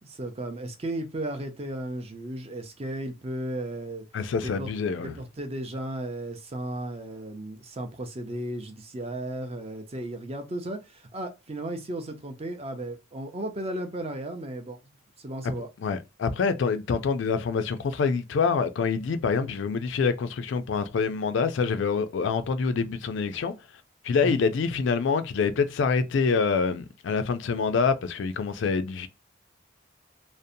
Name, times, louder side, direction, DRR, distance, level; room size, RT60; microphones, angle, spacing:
voice 1, 0.0-4.1 4.4-4.7 5.0-15.7 24.2-24.4, right 1 dB, 30° right, 0.4 m, -35 dB
voice 2, 4.1-5.1 15.4-15.5 15.8-23.5 24.0-29.1, left 5 dB, 60° left, 0.3 m, -26 dB
2.6 x 2.0 x 2.5 m
head